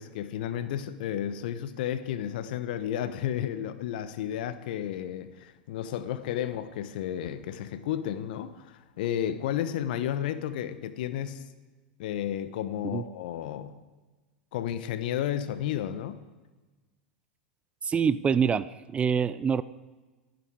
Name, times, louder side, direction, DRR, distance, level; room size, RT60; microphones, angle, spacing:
voice 1, 0.0-11.4 12.0-13.7 14.5-16.2, left 10 dB, 65° left, 1.2 m, -32 dB
voice 2, 17.8-19.6, right 6 dB, 20° right, 0.6 m, -26 dB
28.0 x 9.4 x 4.9 m
hypercardioid pair, 90°, 5 cm